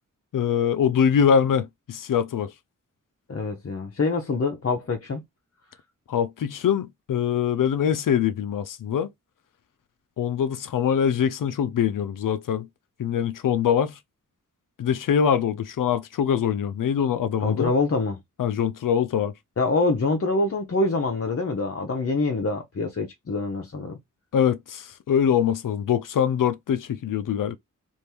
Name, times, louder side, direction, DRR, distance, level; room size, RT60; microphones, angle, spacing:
voice 1, 0.3-2.5 6.1-9.1 10.2-12.7 13.0-14.0 14.8-17.7 18.4-19.3 24.3-27.6, left 8 dB, 85° left, 0.5 m, -23 dB
voice 2, 3.3-5.2 17.4-18.2 19.6-24.0, left 3 dB, 45° left, 0.7 m, -25 dB
3.4 x 2.6 x 2.8 m
wide cardioid pair, 115°, 32 cm